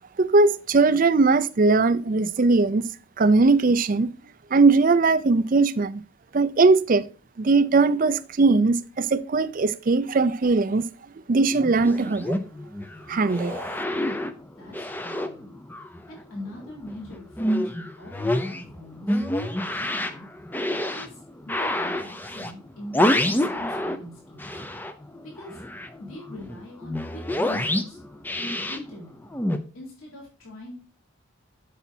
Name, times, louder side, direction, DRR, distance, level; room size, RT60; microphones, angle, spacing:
voice 1, 0.2-2.9 3.2-4.1 4.5-6.0 6.3-7.0 7.4-10.9 11.3-12.4 13.1-13.8, right 3 dB, 40° right, 0.4 m, -20 dB
sound 1, 11.5-16.2 16.5-24.1 24.4-29.6, left 1 dB, 10° left, 0.5 m, -28 dB
voice 2, 14.6-15.5 16.1-17.5 18.0-20.3 20.9-24.6 25.2-25.6 26.0-28.0 28.3-29.2 29.7-30.8, left 1 dB, 85° left, 3.6 m, -42 dB
8.2 x 7.2 x 2.7 m
head